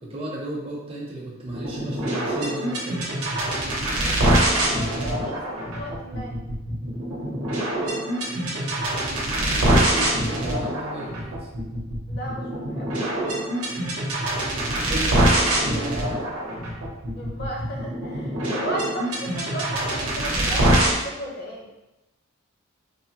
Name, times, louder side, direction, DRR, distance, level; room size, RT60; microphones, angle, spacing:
voice 1, 0.0-3.2 9.5-11.5 14.5-16.2, right 1 dB, 30° right, -4 dB, 0.5 m, -34 dB
sound 1, 1.5-21.0, right 1 dB, 85° right, 0.7 m, -24 dB
voice 2, 4.0-6.4 12.1-12.9 17.1-21.7, right 1 dB, 50° left, -1 dB, 0.6 m, -36 dB
3.4 x 2.0 x 2.8 m, 0.99 s
head